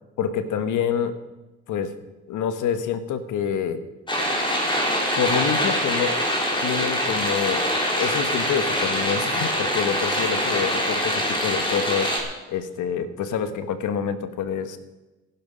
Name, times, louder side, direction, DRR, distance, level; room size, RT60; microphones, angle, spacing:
voice 1, 0.2-1.2 1.7-2.0 2.3-3.8 5.2-6.2 6.6-7.7 7.9-12.1 12.5-14.8, left 7 dB, 80° left, 10 dB, 1.3 m, -27 dB
sound 1, 4.1-12.2, equal, 15° left, 3.8 m, -24 dB
15.5 x 11.5 x 5.2 m, 1.1 s
cardioid pair, 90°, 30 cm